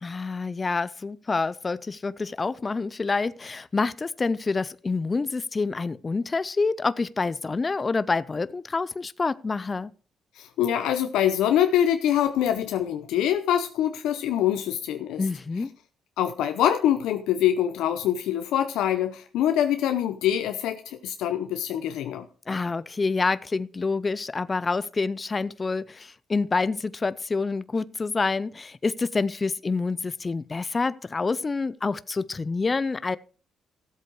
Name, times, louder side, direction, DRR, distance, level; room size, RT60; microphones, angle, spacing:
voice 1, 0.0-9.9 15.2-15.7 22.5-33.2, left 4 dB, 30° left, 0.4 m, -27 dB
voice 2, 10.4-15.2 16.2-22.3, left 10 dB, 85° left, 0.7 m, -24 dB
14.0 x 7.9 x 4.7 m
cardioid pair, 90°, 0 cm